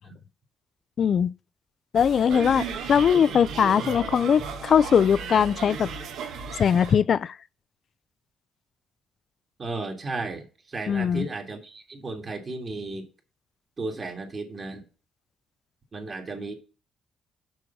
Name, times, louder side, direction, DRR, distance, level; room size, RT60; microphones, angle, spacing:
voice 1, 1.0-1.3 1.9-5.9 6.6-7.4 10.9-11.3, left 7 dB, 55° left, 0.3 m, -21 dB
sound 1, 1.9-7.0, right 5 dB, 80° right, 1.2 m, -35 dB
voice 2, 9.6-13.1 13.8-14.8 15.9-16.5, right 3 dB, 35° right, 1.7 m, -34 dB
6.3 x 4.6 x 5.7 m
cardioid pair, 90°, 0 cm